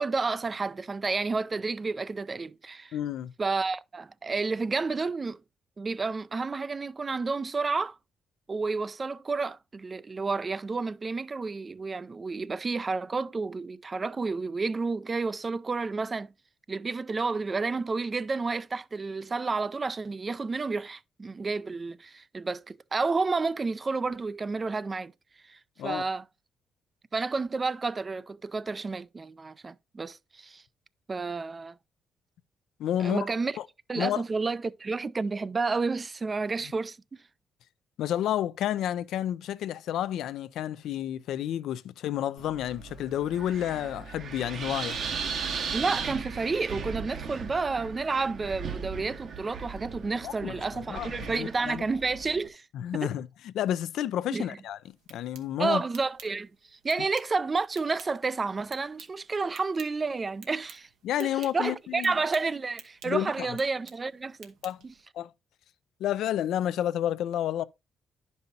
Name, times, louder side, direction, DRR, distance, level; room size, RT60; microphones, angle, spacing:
voice 1, 0.0-3.0 3.4-5.4 5.8-8.0 8.5-16.3 16.7-25.1 25.5-26.2 27.1-30.6 31.1-31.8 33.0-33.6 33.9-37.0 45.7-52.7 53.0-53.1 54.3-54.6 55.6-60.9 61.2-64.5 64.8-64.9, right 4 dB, 30° right, 0.3 m, -30 dB
voice 2, 2.9-3.3 25.8-26.0 32.8-33.3 33.6-33.7 34.0-34.2 38.0-45.0 50.2-51.8 52.7-54.8 55.1-55.8 61.0-62.1 63.0-63.5 64.6-64.8 65.1-65.3 66.0-67.6, left 11 dB, 80° left, 0.3 m, -30 dB
Wind, 42.4-52.5, right 5 dB, 60° right, 1.0 m, -37 dB
sound 1, 54.8-65.0, right 7 dB, 90° right, 0.9 m, -54 dB
10.5 x 5.4 x 2.7 m
cardioid pair, 90°, 0 cm